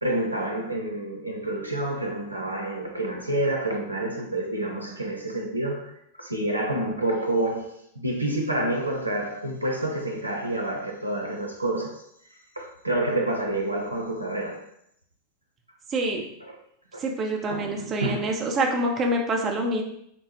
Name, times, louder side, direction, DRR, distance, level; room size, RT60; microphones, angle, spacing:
voice 1, 0.0-5.9 6.2-12.0 12.6-14.6 16.4-16.6 16.9-17.0 17.5-18.3, right 1 dB, 85° right, 0.6 m, -28 dB
voice 2, 15.9-16.2 17.0-19.8, right 1 dB, 25° right, 0.7 m, -26 dB
5.1 x 2.1 x 3.1 m
figure-of-eight pair, 90°, 0 cm